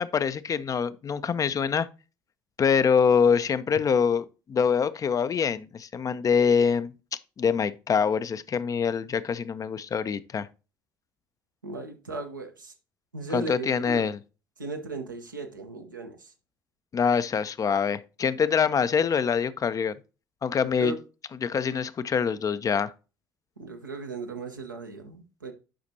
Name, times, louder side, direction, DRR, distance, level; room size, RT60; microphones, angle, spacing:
voice 1, 0.0-1.9 2.6-6.9 7.4-10.5 13.3-14.2 16.9-20.0 20.4-20.9 21.4-22.9, left 6 dB, 35° left, 0.6 m, -25 dB
voice 2, 11.6-12.7 13.1-14.1 14.6-16.3 20.8-21.0 23.6-25.5, right 3 dB, 85° right, 1.0 m, -37 dB
10.0 x 5.9 x 2.8 m
figure-of-eight pair, 50°, 10 cm